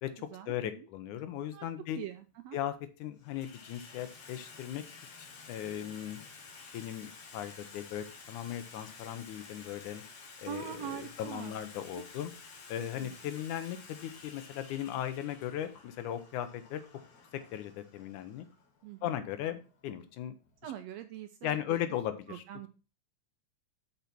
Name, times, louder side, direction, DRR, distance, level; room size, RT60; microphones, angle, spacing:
voice 1, 0.0-2.0 2.5-2.7 3.0-4.8 5.2-6.2 6.7-10.0 10.4-12.3 12.7-16.8 17.5-18.5 19.0-20.4 21.4-22.4, left 11 dB, 80° left, 10 dB, 2.3 m, -37 dB
Water tap faucet / Sink (filling or washing), 1.3-1.4 2.3-2.7 3.0-20.6, left 4 dB, 55° left, 2.4 m, -52 dB
voice 2, 1.9-2.6 10.5-11.6 11.9-12.0 12.8-13.1 18.8-19.1 20.6-21.8 22.3-22.7, right 10 dB, 80° right, 8 dB, 1.6 m, -43 dB
6.6 x 5.8 x 6.0 m, 0.34 s
omnidirectional pair, 3.5 m